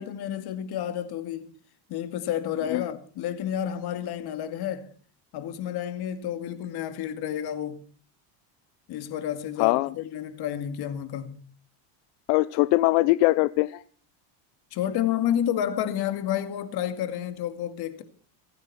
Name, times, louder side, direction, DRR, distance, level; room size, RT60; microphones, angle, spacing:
voice 1, 0.0-1.5 1.9-4.9 5.3-7.8 8.9-11.5 14.7-18.0, left 10 dB, 50° left, 2.3 m, -30 dB
voice 2, 9.6-9.9 12.3-13.8, left 20 dB, 80° left, 0.7 m, -22 dB
27.0 x 9.5 x 4.3 m
cardioid pair, 140°, 48 cm